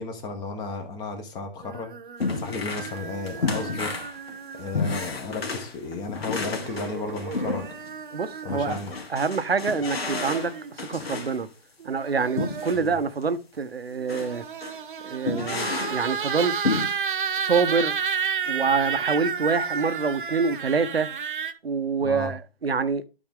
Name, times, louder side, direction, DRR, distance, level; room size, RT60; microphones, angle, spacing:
voice 1, 0.0-1.9 2.4-4.0 4.6-7.6 8.4-9.0 12.7-12.9 22.0-22.4, left 3 dB, 15° left, 1.2 m, -34 dB
sound 1, 1.6-5.3 6.6-8.9 9.7-10.7 11.8-13.0 14.0-21.5, right 7 dB, 60° right, 1.1 m, -32 dB
sound 2, 2.2-3.0 3.3-8.0 8.5-11.4 12.4-12.9 13.2-13.3 14.1-14.3 14.6-14.8 15.3-16.1 16.6-16.9, left 4 dB, 80° left, 2.3 m, -31 dB
voice 2, 8.1-8.8 9.1-11.5 11.8-14.4 15.0-16.6 17.4-18.0 18.5-21.1 21.6-23.0, right 5 dB, 90° right, 1.0 m, -26 dB
12.0 x 4.3 x 3.6 m
hypercardioid pair, 150°, 30 cm